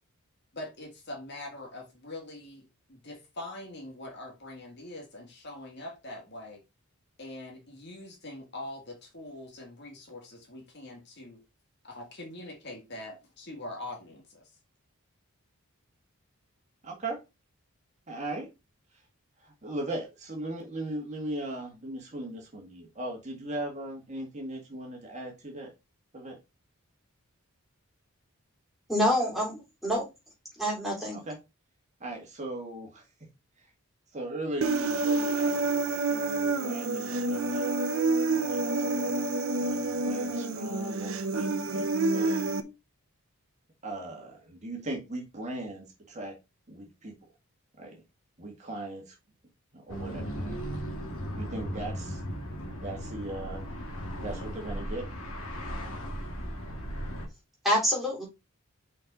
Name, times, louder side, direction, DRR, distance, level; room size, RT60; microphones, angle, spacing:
voice 1, 0.5-6.6 7.2-11.4 11.8-14.4, left 1 dB, 50° left, 1.8 m, -43 dB
voice 2, 16.8-17.2 18.1-18.5 19.4-25.7 26.1-26.4 31.1-31.4 32.0-33.1 33.6-33.7 34.1-37.6 38.3-42.5 43.8-46.4 46.7-47.2 47.8-48.0 48.4-49.2 49.7-50.6 51.4-52.2 52.8-53.6 54.2-55.1, right 1 dB, 30° right, 1.8 m, -38 dB
voice 3, 28.9-30.0 30.6-31.2 57.6-58.2, equal, ahead, 3.2 m, -27 dB
Human voice, 34.6-42.6, right 2 dB, 65° right, 0.8 m, -28 dB
sound 1, 49.9-57.3, equal, 70° left, 2.2 m, -36 dB
5.8 x 5.1 x 4.0 m
head